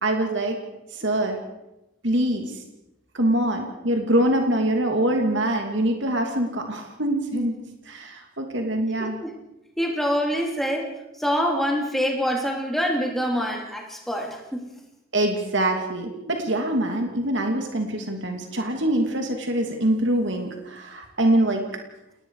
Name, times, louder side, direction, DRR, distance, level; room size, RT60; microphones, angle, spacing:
voice 1, 0.0-0.6 1.0-1.4 2.0-2.5 3.2-7.5 7.9-9.1 15.1-21.6, right 1 dB, 60° right, 3 dB, 2.8 m, -24 dB
voice 2, 9.0-9.3 9.8-14.6, equal, ahead, 0 dB, 3.3 m, -26 dB
29.5 x 19.0 x 5.0 m, 0.94 s
head